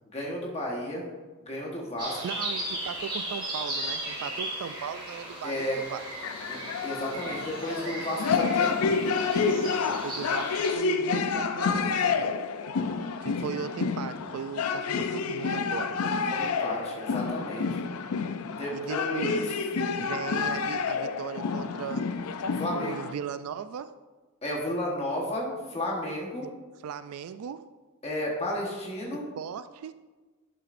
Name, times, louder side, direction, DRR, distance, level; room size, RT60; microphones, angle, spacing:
voice 1, 0.1-1.1 1.4-2.2 5.4-5.8 6.5-8.7 16.3-17.8 18.5-19.3 22.6-23.0 24.4-26.5 28.0-29.2, left 1 dB, 30° left, -3 dB, 1.3 m, -33 dB
sound 1, 2.0-10.7, right 1 dB, 20° right, 2.9 m, -36 dB
voice 2, 2.2-6.1 9.9-12.4 13.2-16.0 18.7-19.5 20.0-22.1 22.7-23.9 26.4-26.5 26.8-27.7 29.4-29.9, right 8 dB, 75° right, 12 dB, 0.3 m, -37 dB
sound 2, 6.2-23.1, left 5 dB, 85° left, 0.5 m, -29 dB
11.0 x 7.7 x 2.6 m, 1.3 s
head